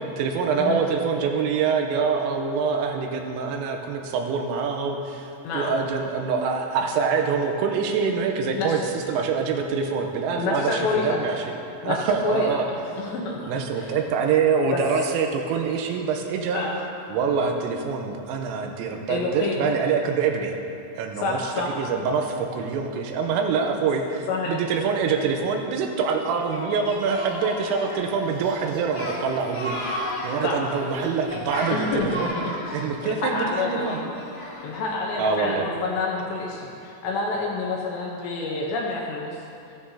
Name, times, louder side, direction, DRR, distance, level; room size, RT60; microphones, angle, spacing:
voice 1, 0.0-8.8 9.1-11.4 11.8-12.7 13.5-16.6 17.1-20.5 21.0-32.4 32.7-34.0 35.2-35.6, right 5 dB, 85° right, 3 dB, 3.4 m, -25 dB
voice 2, 8.5-8.9 10.4-11.2 11.8-14.0 14.7-14.8 16.5-16.8 19.1-19.7 21.2-21.8 24.3-24.6 30.4-30.6 31.7-34.0 34.6-39.4, left 3 dB, 75° left, -2 dB, 2.8 m, -28 dB
Singing, 26.5-34.8, left 1 dB, 55° left, 1.0 m, -34 dB
15.0 x 12.5 x 2.8 m, 2.7 s
omnidirectional pair, 5.9 m